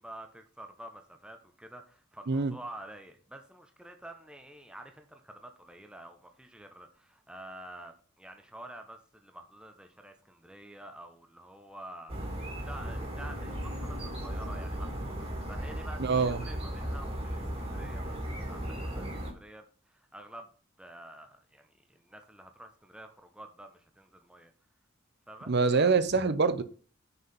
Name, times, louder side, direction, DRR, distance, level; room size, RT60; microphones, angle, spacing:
voice 1, 0.0-20.5 20.8-24.5 25.3-25.9, right 1 dB, 5° right, 0.9 m, -49 dB
sound 1, 12.1-19.3, equal, 30° right, 2.4 m, -36 dB
voice 2, 16.0-16.4 25.5-26.6, right 4 dB, 55° right, 0.8 m, -25 dB
6.7 x 4.8 x 5.4 m
head